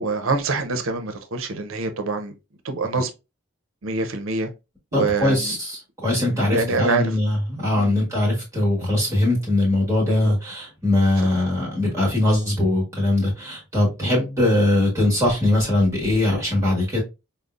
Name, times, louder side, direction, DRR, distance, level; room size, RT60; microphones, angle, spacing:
voice 1, 0.0-2.3 2.6-3.1 3.8-4.5 4.9-5.6 6.1-7.0 7.7-7.9 10.1-10.3 11.2-11.3 14.0-14.2, right 3 dB, 75° right, 0.6 m, -25 dB
voice 2, 4.9-17.0, left 1 dB, 15° right, 1.2 m, -21 dB
5.1 x 2.0 x 2.4 m
head